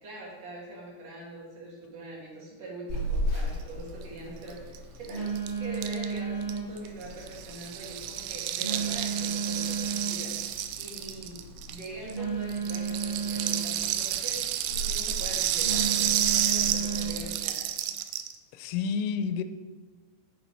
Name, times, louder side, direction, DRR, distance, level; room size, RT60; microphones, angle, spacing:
voice 1, 0.0-5.3 5.6-17.6, right 2 dB, 50° right, -4 dB, 2.1 m, -43 dB
Telephone, 2.9-17.3, right 3 dB, 30° left, 3.2 m, -34 dB
Rattle (instrument), 4.5-4.6 4.7-4.8 5.0-12.2 12.5-18.4, right 12 dB, 90° right, 2.3 m, -30 dB
voice 2, 18.5-19.4, left 6 dB, 85° left, 11 dB, 2.8 m, -29 dB
7.6 x 6.9 x 4.5 m, 1.3 s
omnidirectional pair, 5.3 m